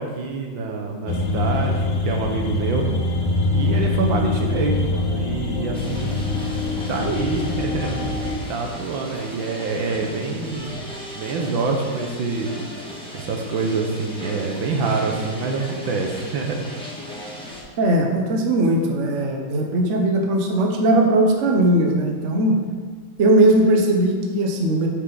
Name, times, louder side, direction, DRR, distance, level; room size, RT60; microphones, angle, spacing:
voice 1, 0.0-2.9 3.5-6.3 6.9-8.2 8.5-10.9 11.2-12.5 13.1-16.6, right 4 dB, 85° right, 2 dB, 1.8 m, -26 dB
sound 1, 1.1-8.4, left 3 dB, 70° left, 1.5 m, -24 dB
sound 2, 5.7-17.6, left 1 dB, 5° left, 1.2 m, -37 dB
voice 2, 17.8-22.6 23.2-24.9, right 1 dB, 50° right, 2 dB, 1.1 m, -19 dB
9.1 x 6.2 x 4.0 m, 1.5 s
omnidirectional pair, 2.1 m